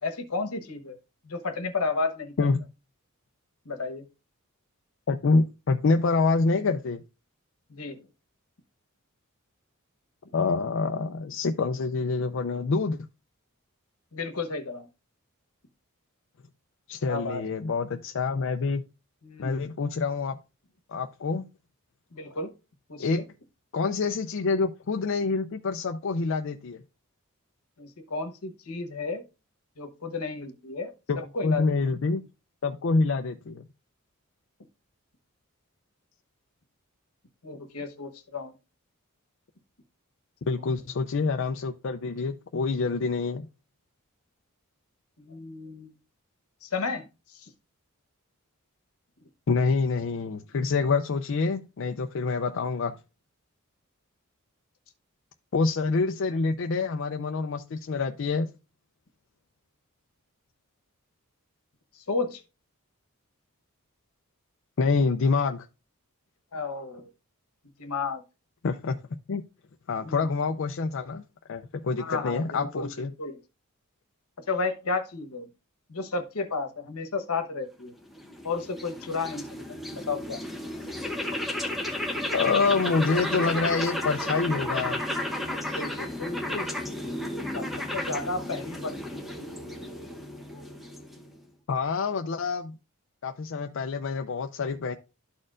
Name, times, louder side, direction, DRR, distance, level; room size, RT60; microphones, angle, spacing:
voice 1, 0.0-1.0 1.2-2.3 3.6-4.1 7.7-8.1 14.1-14.9 17.0-17.4 19.2-19.6 22.1-22.5 22.9-23.2 27.8-29.2 29.8-31.7 37.4-38.5 45.2-46.0 46.6-47.5 61.9-62.4 66.5-67.1 67.8-68.2 70.0-70.3 72.0-73.4 74.5-75.5 75.9-77.9 78.4-79.4 79.9-80.4 85.7-86.9 87.5-89.2, left 3 dB, 85° left, 1.1 m, -33 dB
voice 2, 5.1-7.0 10.3-13.0 16.9-18.8 19.4-20.4 20.9-21.5 23.0-23.2 23.7-26.8 31.1-32.2 32.6-33.6 40.5-43.5 49.5-52.9 55.5-58.5 64.8-65.7 68.6-69.0 69.3-69.4 69.9-71.2 71.5-73.1 82.3-85.0 91.7-92.8 93.2-95.0, left 4 dB, 60° left, 0.4 m, -26 dB
sound 1, 78.0-91.4, left 1 dB, ahead, 0.9 m, -33 dB
12.5 x 4.3 x 2.5 m
head